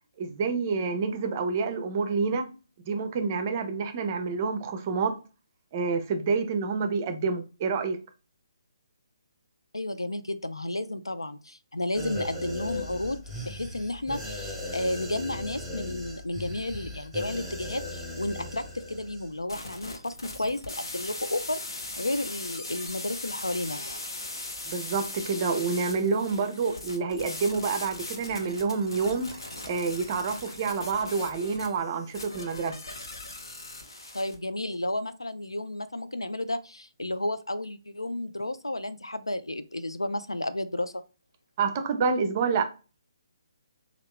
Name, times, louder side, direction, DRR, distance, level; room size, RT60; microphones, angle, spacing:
voice 1, 0.2-2.5 2.9-5.1 5.7-8.0 24.7-32.8 41.6-42.6, right 5 dB, 35° right, 0.5 m, -28 dB
voice 2, 9.7-23.8 34.1-41.0, left 1 dB, 85° left, 0.4 m, -32 dB
sound 1, 11.9-19.3 19.6-19.8, left 1 dB, ahead, 1.0 m, -38 dB
sound 2, 19.5-34.4, left 2 dB, 65° left, 0.8 m, -39 dB
3.1 x 2.4 x 3.5 m
figure-of-eight pair, 140°, 2 cm